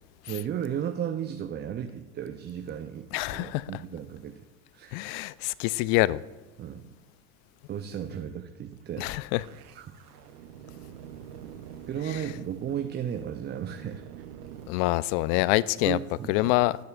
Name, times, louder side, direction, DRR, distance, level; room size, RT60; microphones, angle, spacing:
voice 1, 0.3-4.4 4.7-5.0 6.6-6.9 7.7-9.1 9.7-9.9 11.9-14.0 15.8-16.5, right 9 dB, 25° right, 0.5 m, -34 dB
voice 2, 3.1-3.6 4.9-6.2 9.0-9.4 14.7-16.0 16.3-16.8, left 18 dB, 55° left, 0.5 m, -25 dB
sound 1, 9.3-14.7, right 9 dB, 85° right, 0.7 m, -46 dB
19.0 x 6.7 x 2.4 m
hypercardioid pair, 85°, 45 cm